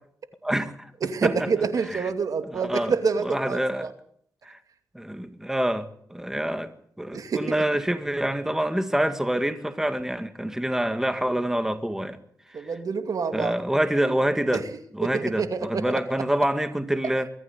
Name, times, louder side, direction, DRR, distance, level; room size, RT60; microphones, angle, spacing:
voice 1, 0.4-0.9 1.2-1.5 1.9-2.1 2.5-2.9 3.2-3.9 4.4-4.6 4.9-12.2 12.5-12.7 13.3-14.6 14.9-17.3, right 1 dB, 5° right, 9 dB, 1.9 m, -26 dB
voice 2, 1.0-3.9 7.1-7.6 12.5-13.5 14.5-14.6 15.0-16.0 17.0-17.1, right 5 dB, 65° right, 8 dB, 2.6 m, -27 dB
22.5 x 14.0 x 9.7 m, 0.65 s
cardioid pair, 75°, 6 cm